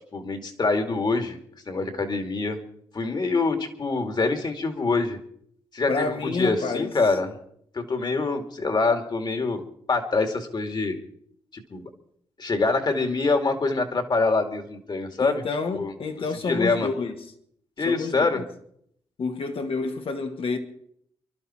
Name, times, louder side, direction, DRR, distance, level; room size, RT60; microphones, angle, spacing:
voice 1, 0.1-1.4 1.7-2.6 2.9-5.2 5.7-7.4 7.7-11.0 11.5-11.9 12.4-15.4 15.7-15.9 16.5-16.9 17.8-18.4, left 3 dB, 45° left, 2.4 m, -25 dB
voice 2, 5.9-6.9 15.2-17.2 17.8-18.4 19.2-20.6, left 4 dB, 65° left, 2.0 m, -29 dB
27.5 x 12.0 x 4.4 m
cardioid pair, 70°, 10 cm